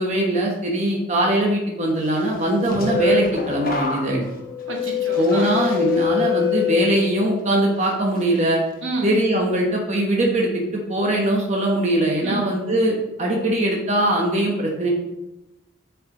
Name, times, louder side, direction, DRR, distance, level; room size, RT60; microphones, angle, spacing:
voice 1, 0.0-4.3 5.2-8.6 9.0-14.9, right 1 dB, 35° right, -1 dB, 1.2 m, -21 dB
sound 1, 2.3-7.4 7.8-8.2, left 6 dB, 50° left, 1.1 m, -24 dB
voice 2, 4.7-5.6 8.8-9.1 12.2-12.5, right 2 dB, 90° right, -1 dB, 1.8 m, -29 dB
7.4 x 6.0 x 3.8 m, 0.93 s
head